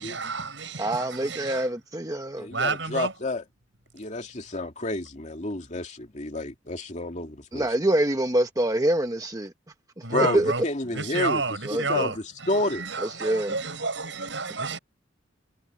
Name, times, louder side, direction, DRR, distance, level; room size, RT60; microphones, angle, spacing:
voice 1, 0.0-1.7 2.5-3.1 10.0-10.6 10.9-14.8, right 4 dB, 85° right, 6.1 m, -30 dB
voice 2, 0.8-2.5 7.5-9.5 10.2-10.5 11.7-12.1 13.2-13.5, right 1 dB, 20° right, 1.1 m, -25 dB
voice 3, 2.4-3.4 3.9-7.7 10.1-11.4 11.9-12.8, left 2 dB, 40° left, 2.5 m, -30 dB
head